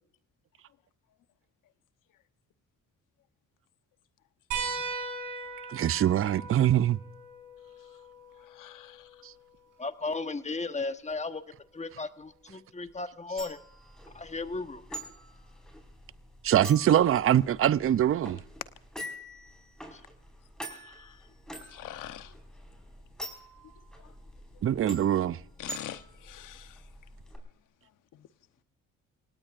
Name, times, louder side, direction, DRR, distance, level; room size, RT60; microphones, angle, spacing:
sound 1, 4.5-9.6 11.1-11.2 12.9-13.0, right 4 dB, 85° right, 6.6 m, -39 dB
voice 1, 5.7-7.0 9.2-9.3 16.4-18.4 24.6-25.4, right 11 dB, 45° right, 0.5 m, -23 dB
voice 2, 8.4-9.1 20.7-21.2 21.6-22.4 25.6-26.8 28.1-28.3, left 12 dB, 80° left, 1.0 m, -44 dB
voice 3, 9.8-11.4 11.7-13.6 14.1-14.8 19.9-20.0, left 3 dB, 20° left, 1.2 m, -35 dB
sound 2, 13.4-27.4, equal, ahead, 5.1 m, -46 dB
28.0 x 18.0 x 2.5 m
cardioid pair, 70°, 31 cm